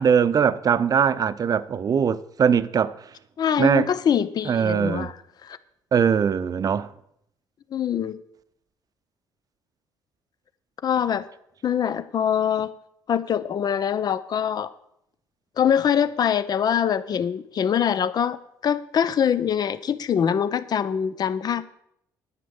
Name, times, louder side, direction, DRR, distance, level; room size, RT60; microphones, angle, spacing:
voice 1, 0.0-3.0 3.6-3.9 4.5-5.1 5.9-6.9, right 7 dB, 45° right, 0.7 m, -21 dB
voice 2, 3.4-5.1 5.4-5.6 7.7-8.2 10.8-11.3 11.6-12.7 13.1-14.7 15.6-21.6, left 8 dB, 50° left, 0.8 m, -24 dB
9.9 x 7.5 x 7.1 m
supercardioid pair, 75°, 9 cm